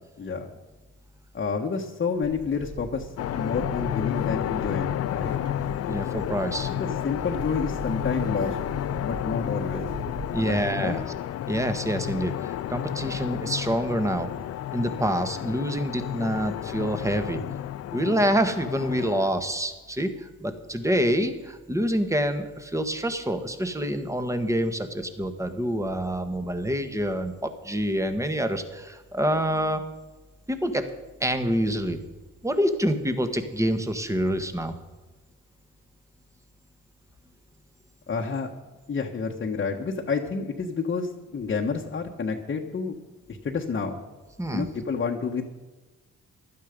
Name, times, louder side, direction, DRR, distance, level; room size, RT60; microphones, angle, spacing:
voice 1, 0.2-0.5 1.3-5.3 6.7-8.6 9.0-9.9 10.4-11.0 38.1-38.5 38.9-42.9 43.4-44.0 44.5-45.4, left 5 dB, 40° left, 0 dB, 1.5 m, -29 dB
Bird, 2.2-11.0, right 3 dB, 55° right, 2.7 m, -40 dB
sound 1, 3.2-19.3, left 12 dB, 55° left, 0.5 m, -31 dB
voice 2, 5.9-6.7 10.3-11.0 11.5-14.3 14.7-17.4 17.9-29.8 30.5-30.9 31.2-32.0 32.4-34.8 44.4-44.7, equal, 10° right, 8 dB, 1.7 m, -26 dB
16.0 x 12.0 x 5.2 m, 1.2 s
cardioid pair, 90°, 30 cm